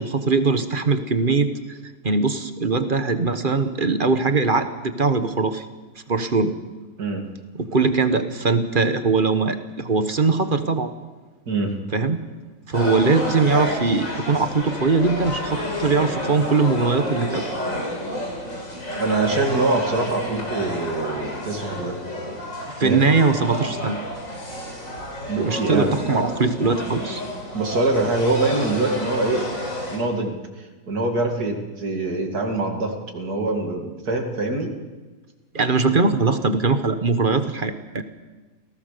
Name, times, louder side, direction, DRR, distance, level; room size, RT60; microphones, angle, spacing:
voice 1, 0.0-1.8 2.0-5.7 6.1-6.5 7.5-10.9 11.9-12.2 12.7-17.5 22.8-24.0 25.4-27.2 35.5-38.0, right 4 dB, 35° right, 9 dB, 1.4 m, -21 dB
voice 2, 7.0-7.3 11.5-11.8 19.0-22.0 22.8-23.1 25.3-25.9 27.5-29.5 29.9-34.7, right 2 dB, 85° right, 3 dB, 3.0 m, -24 dB
sound 1, 12.7-30.0, equal, 60° left, 4.6 m, -30 dB
28.5 x 17.5 x 6.8 m, 1.3 s
omnidirectional pair, 1.6 m